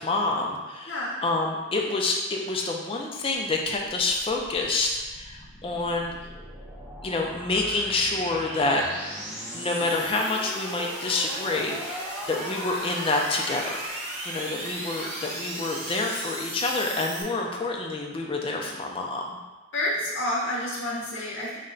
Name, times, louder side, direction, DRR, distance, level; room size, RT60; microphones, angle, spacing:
voice 1, 0.0-6.1 7.0-9.1 9.5-13.7 14.3-19.4, left 2 dB, 25° left, 1 dB, 0.4 m, -27 dB
voice 2, 0.9-1.2 14.9-15.1 19.7-21.6, left 1 dB, 60° left, -5 dB, 0.9 m, -29 dB
sound 1, 4.0-17.2, right 1 dB, 30° right, 0.9 m, -37 dB
4.1 x 2.2 x 3.8 m, 1.2 s
head